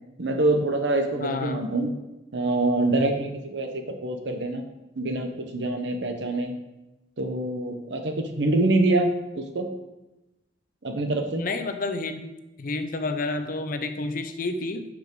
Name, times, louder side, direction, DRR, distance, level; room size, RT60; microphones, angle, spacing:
voice 1, 0.2-1.9 2.3-4.7 5.0-6.5 7.2-9.1 9.3-9.7 10.8-11.5, right 2 dB, 70° right, 5 dB, 1.0 m, -25 dB
voice 2, 1.2-1.6 11.4-12.3 12.6-14.9, left 3 dB, 50° left, 8 dB, 0.6 m, -30 dB
9.1 x 5.0 x 3.8 m, 1.0 s
head